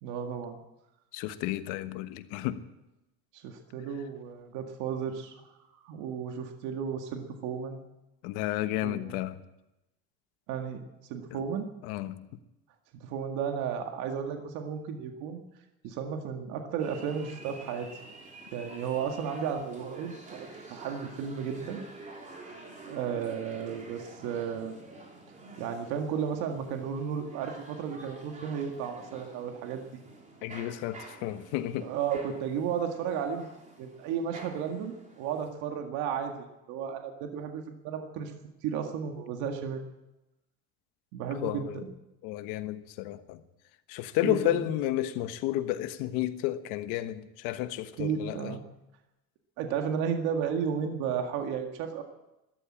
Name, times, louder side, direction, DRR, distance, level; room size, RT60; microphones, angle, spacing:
voice 1, 0.0-0.6 3.3-5.5 5.8-7.8 8.8-9.2 10.5-10.8 11.1-11.7 13.0-15.4 15.8-17.9 18.5-21.9 22.9-24.7 25.6-29.8 31.8-33.5 33.8-38.3 38.6-39.8 41.1-41.9 44.2-44.7 48.0-48.6 49.6-52.0, right 7 dB, 70° right, 1.9 m, -33 dB
voice 2, 1.1-2.6 8.2-9.4 11.3-11.4 11.8-12.3 30.4-31.9 41.4-41.8 42.2-43.4 43.9-48.6, left 14 dB, 75° left, 1.3 m, -32 dB
sound 1, 16.8-35.5, right 2 dB, 25° right, 3.8 m, -49 dB
14.0 x 12.0 x 8.7 m
cardioid pair, 140°, 31 cm